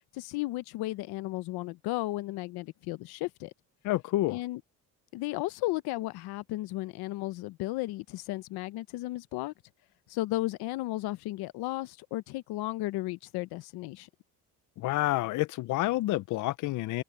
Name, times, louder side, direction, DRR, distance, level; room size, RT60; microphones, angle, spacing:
voice 1, 0.1-3.5 4.3-4.6 5.1-9.5 10.1-14.1, left 18 dB, 85° left, 0.8 m, -34 dB
voice 2, 3.8-4.4 14.8-17.0, left 17 dB, 55° left, 0.5 m, -29 dB
cardioid pair, 160°, 37 cm